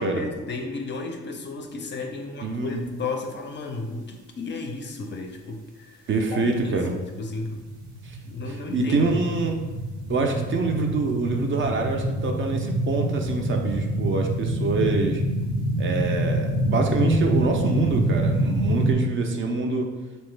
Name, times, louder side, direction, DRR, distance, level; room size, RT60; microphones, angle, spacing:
voice 1, 0.0-7.6 8.2-9.4, left 3 dB, 40° left, 3 dB, 0.4 m, -34 dB
voice 2, 2.4-2.8 6.1-6.9 8.0-8.2 8.7-9.6 10.1-15.2 15.8-19.9, right 3 dB, 40° right, 3 dB, 0.4 m, -25 dB
sound 1, 7.0-18.9, right 1 dB, 80° right, 0.8 m, -26 dB
3.0 x 2.1 x 3.1 m, 1.2 s
cardioid pair, 90°, 30 cm